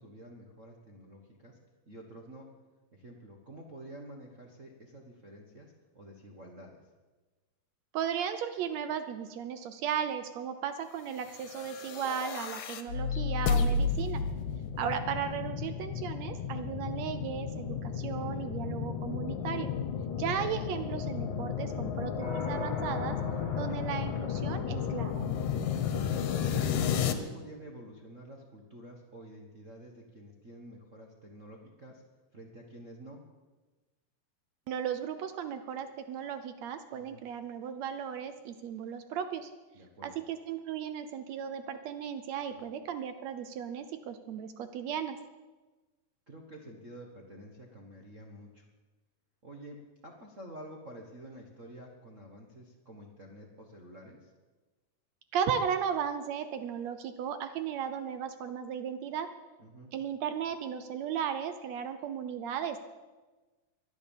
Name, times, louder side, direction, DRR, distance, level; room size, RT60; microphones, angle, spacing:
voice 1, 0.0-1.6 1.8-2.5 2.9-6.8 12.9-13.2 18.1-18.4 21.7-22.0 26.1-26.8 27.1-32.0 32.3-33.2 36.9-37.2 39.7-40.2 42.5-42.6 46.3-48.6 49.4-49.8 50.0-54.3 59.6-59.9, right 1 dB, 50° right, 0 dB, 0.9 m, -49 dB
voice 2, 7.9-14.2 14.8-19.7 20.2-23.2 23.6-25.4 34.7-39.5 40.0-45.2 55.3-59.3 59.9-62.8, right 8 dB, 75° right, 10 dB, 1.7 m, -35 dB
sound 1, 11.4-27.1, left 6 dB, 70° left, 2.4 m, -33 dB
sound 2, 22.2-25.6, equal, 25° right, 7.1 m, -45 dB
23.0 x 8.2 x 7.2 m, 1.3 s
omnidirectional pair, 3.6 m